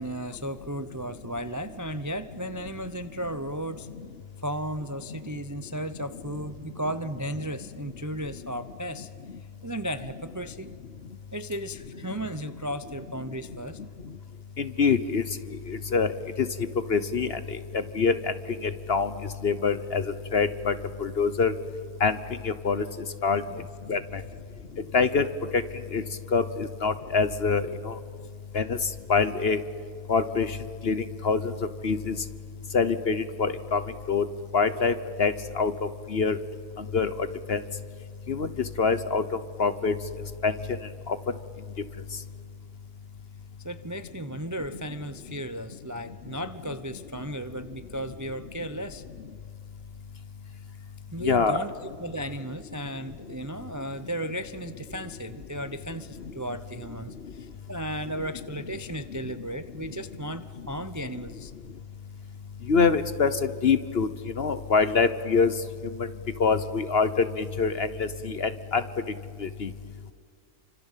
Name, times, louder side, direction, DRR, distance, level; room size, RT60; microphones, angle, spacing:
voice 1, 0.0-3.9 4.4-9.1 9.6-10.7 11.3-13.8 23.5-23.7 43.6-49.0 51.1-61.5, right 1 dB, 20° right, 11 dB, 0.4 m, -35 dB
voice 2, 14.6-15.2 15.7-16.1 16.4-16.5 16.9-18.3 18.6-19.1 19.4-20.7 21.0-21.5 22.0-22.2 22.4-22.8 23.2-23.4 23.9-24.2 24.9-25.3 25.5-25.6 25.9-26.0 26.3-28.0 28.5-28.8 29.1-29.6 30.1-30.6 30.8-31.5 31.8-32.2 32.7-33.8 34.1-34.2 34.5-36.4 36.8-37.6 38.3-38.5 38.8-39.2 39.6-39.9 40.4-40.5 41.1-41.2 51.2-51.6 62.7-65.5 66.0-66.1 66.4-68.8 69.4-69.7, left 5 dB, 45° left, 12 dB, 1.0 m, -25 dB
29.5 x 25.5 x 7.4 m, 2.2 s
omnidirectional pair, 1.7 m